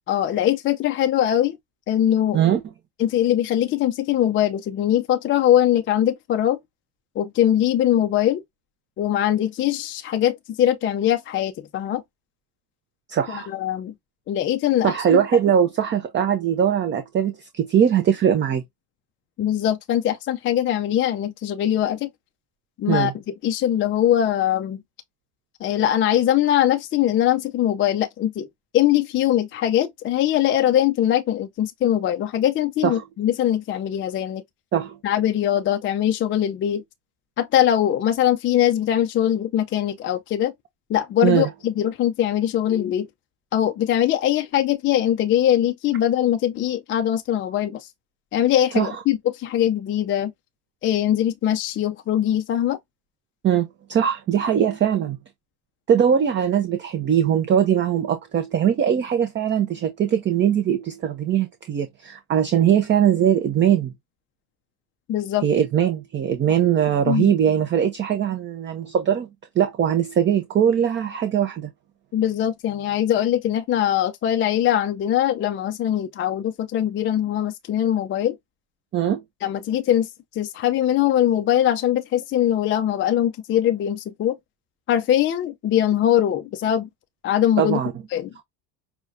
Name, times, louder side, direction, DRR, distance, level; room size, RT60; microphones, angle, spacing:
voice 1, 0.1-1.6 1.9-2.4 3.0-6.6 7.2-8.4 9.0-12.0 13.3-13.9 14.3-15.2 19.4-22.1 22.8-23.1 23.4-24.8 25.6-28.5 28.7-34.4 35.0-36.8 37.4-40.5 40.9-43.1 43.5-47.9 48.3-50.3 50.8-52.8 65.1-65.4 67.1-67.3 72.1-78.4 79.4-84.4 84.9-86.9 87.2-87.8 88.1-88.3, left 11 dB, 25° left, 0.4 m, -21 dB
voice 2, 13.1-13.5 14.8-18.6 22.9-23.1 32.8-33.0 34.7-34.9 41.2-41.5 48.8-48.9 53.4-55.2 55.9-63.9 65.4-69.3 69.6-71.7 78.9-79.2 87.6-87.9, right 9 dB, 25° right, 0.5 m, -21 dB
6.1 x 2.3 x 2.6 m
hypercardioid pair, 90°, 50 cm